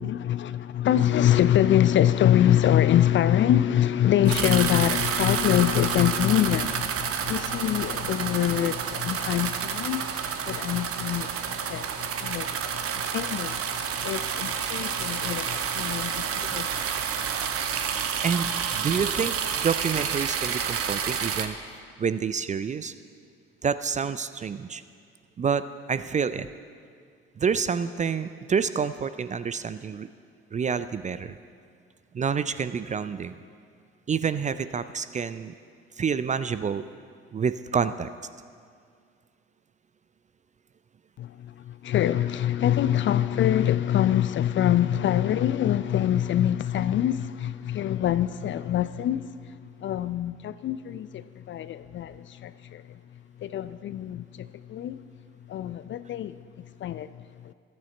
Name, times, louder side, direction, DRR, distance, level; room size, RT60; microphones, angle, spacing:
voice 1, 0.0-16.9 41.2-49.5 49.8-52.8 53.4-55.0 55.5-57.5, left 11 dB, 35° left, 0.5 m, -25 dB
sound 1, 4.3-21.5, right 7 dB, 45° right, 1.0 m, -29 dB
voice 2, 18.2-19.3 19.6-21.6 22.0-22.9 23.6-24.8 25.4-26.5 27.4-30.1 30.5-31.4 32.1-33.4 34.1-35.5 36.0-36.8 37.3-38.1, right 6 dB, 25° right, 0.4 m, -28 dB
15.0 x 12.5 x 4.3 m
figure-of-eight pair, 55°, 33 cm